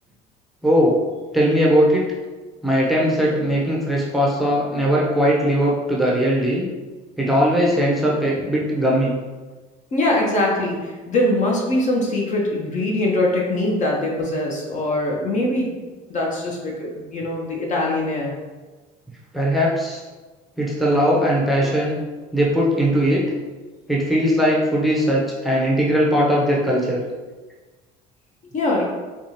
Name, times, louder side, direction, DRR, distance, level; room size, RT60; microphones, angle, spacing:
voice 1, 0.6-1.0 1.3-2.0 2.6-6.7 7.2-9.2 19.3-20.0 20.6-22.0 22.3-23.2 23.9-27.0, equal, ahead, -4 dB, 0.7 m, -19 dB
voice 2, 9.9-15.7 16.1-18.3 28.5-28.8, left 1 dB, 45° left, -2 dB, 0.9 m, -22 dB
4.6 x 2.4 x 2.9 m, 1.3 s
supercardioid pair, 105°, 18 cm